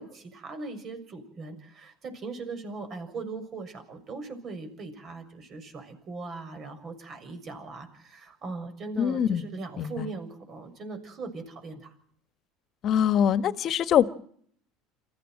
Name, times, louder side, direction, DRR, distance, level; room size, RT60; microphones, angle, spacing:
voice 1, 0.0-11.9, right 3 dB, 45° right, 8 dB, 6.7 m, -39 dB
voice 2, 9.0-9.4 9.8-10.1 12.8-14.1, left 9 dB, 50° left, 14 dB, 1.4 m, -23 dB
27.5 x 15.0 x 7.8 m, 0.62 s
hypercardioid pair, 75°, 0 cm